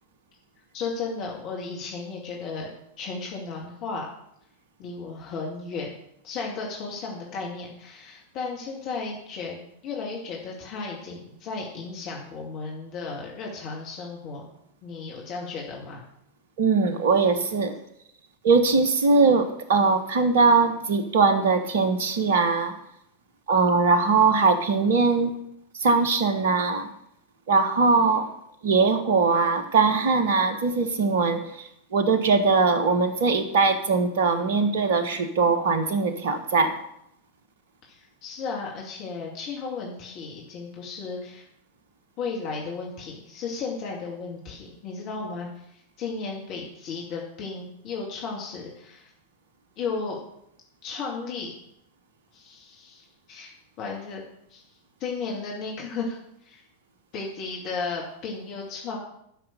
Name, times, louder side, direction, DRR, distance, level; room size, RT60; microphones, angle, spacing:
voice 1, 0.7-2.7 3.0-4.0 4.8-5.9 6.2-9.6 9.8-14.5 14.8-16.0 37.9-41.4 42.2-49.1 49.8-50.2 50.8-51.5 52.3-53.5 53.8-54.2 54.5-54.6 55.0-56.2 56.5-56.6 57.1-59.0, left 4 dB, 40° left, -2 dB, 2.3 m, -34 dB
voice 2, 16.6-17.7 18.4-22.7 23.5-25.3 25.8-26.9 27.5-28.3 28.6-31.4 31.9-36.7, right 4 dB, 55° right, 10 dB, 1.3 m, -21 dB
12.0 x 6.0 x 6.7 m, 0.75 s
figure-of-eight pair, 90°, 0 cm